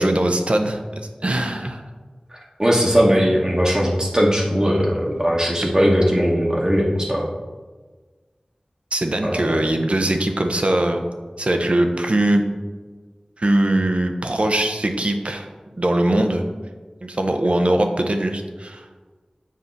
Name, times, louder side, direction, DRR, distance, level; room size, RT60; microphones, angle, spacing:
voice 1, 0.0-1.8 8.9-11.0 11.4-12.4 13.4-15.5 15.7-16.4 17.0-18.8, right 1 dB, 55° right, 5 dB, 0.7 m, -21 dB
voice 2, 2.3-7.3 9.2-9.5, equal, 30° right, -3 dB, 1.0 m, -19 dB
7.4 x 2.7 x 5.8 m, 1.4 s
wide cardioid pair, 45°, 2 cm